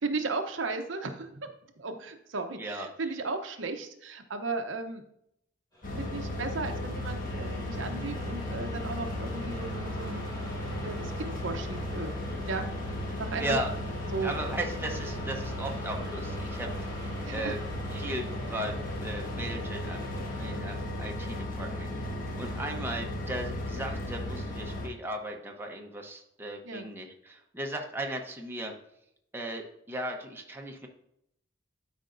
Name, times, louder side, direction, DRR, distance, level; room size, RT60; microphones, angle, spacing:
voice 1, 0.0-1.5 1.8-5.0 6.0-10.2 10.8-12.2 12.5-12.7 13.2-13.6 14.1-14.3 17.2-17.6 20.4-20.7 22.3-22.6 26.6-26.9, right 3 dB, 85° right, 6 dB, 0.8 m, -35 dB
voice 2, 2.5-2.9 13.4-13.7 14.2-17.6 17.9-22.1 22.4-28.7 29.3-30.9, right 1 dB, 10° right, 1 dB, 0.9 m, -37 dB
sound 1, 5.7-20.5, left 1 dB, 20° left, 2.6 m, -46 dB
sound 2, 5.8-24.9, left 1 dB, 45° left, 1.5 m, -35 dB
12.0 x 5.1 x 2.6 m, 0.76 s
head